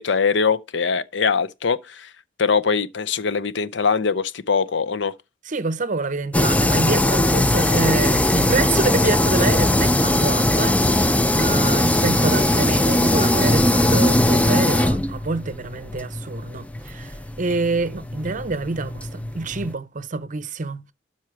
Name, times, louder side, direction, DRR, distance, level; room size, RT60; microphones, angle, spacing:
voice 1, 0.0-2.1 2.4-5.1, left 5 dB, 65° left, 0.6 m, -22 dB
voice 2, 5.5-20.8, right 3 dB, 40° right, 0.7 m, -27 dB
sound 1, 6.3-19.7, left 1 dB, 5° left, 0.4 m, -20 dB
12.5 x 4.3 x 4.7 m
head